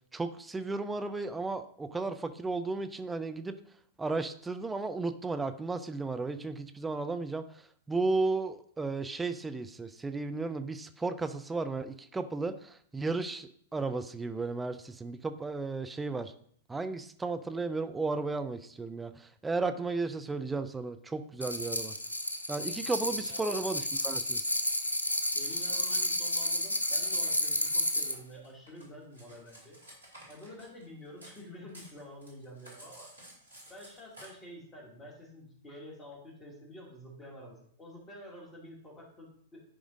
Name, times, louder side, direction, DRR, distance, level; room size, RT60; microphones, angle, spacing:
voice 1, 0.1-3.6 4.0-7.4 7.9-16.3 16.7-21.9 22.5-24.5, right 3 dB, 10° right, 9 dB, 0.4 m, -34 dB
sound 1, 21.4-28.2, left 1 dB, 85° left, 0.6 m, -31 dB
voice 2, 23.0-23.5 25.3-29.8 30.3-33.1 33.7-39.6, equal, 20° left, -1 dB, 2.3 m, -49 dB
Cutlery silverware, 28.1-31.4 31.7-34.3, right 1 dB, 80° right, 2.5 m, -53 dB
11.0 x 4.9 x 2.6 m, 0.62 s
figure-of-eight pair, 100°, 0 cm